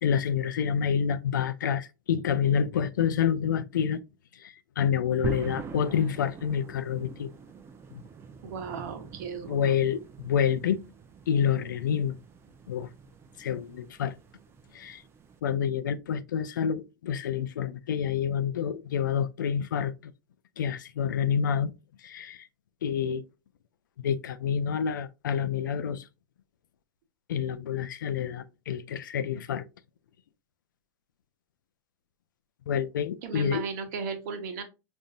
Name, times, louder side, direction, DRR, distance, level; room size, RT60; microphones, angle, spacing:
voice 1, 0.0-4.0 4.4-7.3 7.9-8.0 9.5-10.8 11.3-12.2 12.7-12.9 13.4-14.1 14.7-15.0 15.4-20.1 20.6-21.7 22.0-22.5 22.8-23.2 24.0-26.1 27.3-29.6 32.7-33.6, left 8 dB, 90° left, 0.4 m, -28 dB
sound 1, 5.2-15.4, right 6 dB, 25° right, 0.6 m, -44 dB
voice 2, 8.4-9.8 33.2-34.6, right 5 dB, 65° right, 1.0 m, -36 dB
5.3 x 2.6 x 2.3 m
hypercardioid pair, 120°, 10 cm